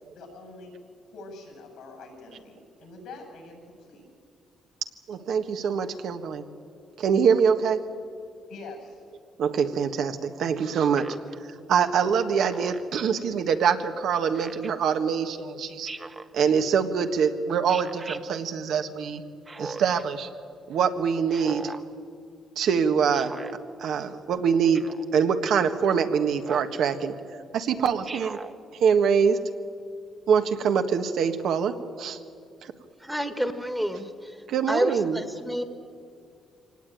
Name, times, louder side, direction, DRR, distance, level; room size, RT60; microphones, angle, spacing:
voice 1, 0.0-0.7 1.1-4.1 8.5-9.0, left 3 dB, 85° left, 3 dB, 7.8 m, -44 dB
voice 2, 5.1-6.4 7.0-7.8 9.4-11.1 11.7-15.9 16.3-19.2 19.6-20.3 20.7-21.7 22.6-23.3 23.8-27.1 27.5-28.4 28.8-29.4 30.3-32.2 32.6-32.7 34.5-35.2, right 6 dB, 75° right, 7 dB, 1.5 m, -24 dB
Speech synthesizer, 11.0-11.3 12.5-13.0 14.3-14.7 15.9-16.3 17.7-18.2 19.5-20.0 21.3-21.8 23.1-23.5 24.7-25.1 26.4-26.8 28.0-28.5, right 3 dB, 25° right, 1.1 m, -39 dB
voice 3, 33.0-34.1 34.7-35.6, equal, 5° right, 8 dB, 1.6 m, -28 dB
24.0 x 18.5 x 9.2 m, 2.3 s
cardioid pair, 90°, 0 cm